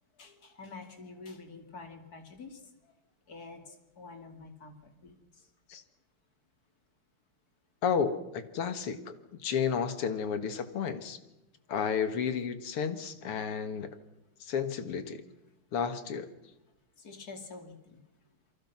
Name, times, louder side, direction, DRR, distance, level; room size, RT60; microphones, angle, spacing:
voice 1, 0.2-2.7 3.3-5.5 9.9-10.0 17.0-18.0, left 3 dB, 45° left, 6 dB, 3.0 m, -48 dB
voice 2, 7.8-11.2 11.7-13.9 14.4-15.2 15.7-16.3, left 7 dB, 90° left, 11 dB, 2.6 m, -32 dB
28.0 x 23.5 x 6.1 m, 0.93 s
omnidirectional pair, 2.4 m